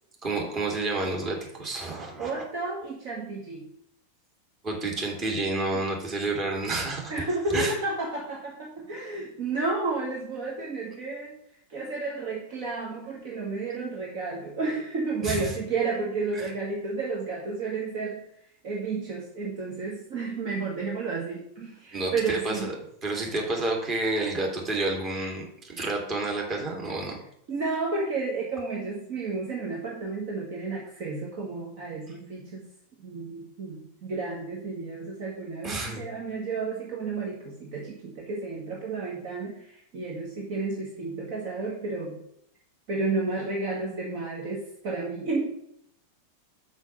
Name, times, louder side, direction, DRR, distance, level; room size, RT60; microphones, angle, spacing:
voice 1, 0.2-2.4 4.6-7.1 7.5-7.7 15.2-15.5 16.4-16.5 21.9-22.7 23.0-27.2 35.6-36.0, right 2 dB, 30° right, 0 dB, 2.6 m, -29 dB
voice 2, 2.2-3.7 5.7-5.9 7.1-11.4 11.7-18.2 18.6-22.7 27.5-32.7 33.0-42.2 42.9-45.5, right 3 dB, 45° right, -2 dB, 1.7 m, -32 dB
6.2 x 5.5 x 6.8 m, 0.72 s
figure-of-eight pair, 90°, 0 cm